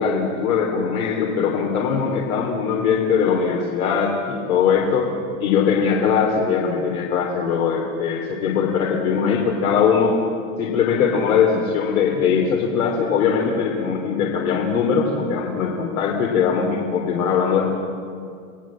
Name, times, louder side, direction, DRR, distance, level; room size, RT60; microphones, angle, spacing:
voice 1, 0.0-5.1 5.4-10.2 10.6-17.7, left 6 dB, 70° left, 0 dB, 3.3 m, -21 dB
29.0 x 18.0 x 7.5 m, 2.3 s
supercardioid pair, 180°, 44 cm